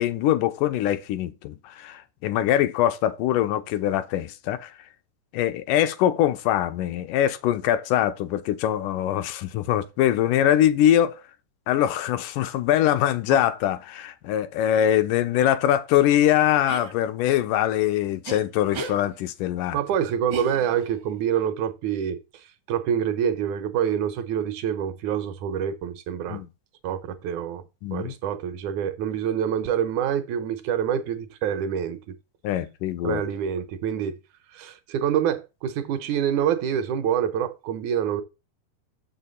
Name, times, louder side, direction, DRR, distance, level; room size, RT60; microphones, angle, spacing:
voice 1, 0.0-4.7 5.3-11.2 11.7-19.8 26.3-26.5 27.8-28.1 32.4-33.2, left 11 dB, 85° left, 2.2 m, -23 dB
sound 1, 16.7-16.9 18.2-18.4 18.7-19.0 20.3-21.0, right 2 dB, 55° right, 1.2 m, -34 dB
voice 2, 19.7-26.4 26.8-27.6 27.9-32.2 33.0-34.2 34.5-38.2, right 9 dB, 75° right, 2.1 m, -26 dB
7.1 x 5.7 x 3.9 m
omnidirectional pair, 3.7 m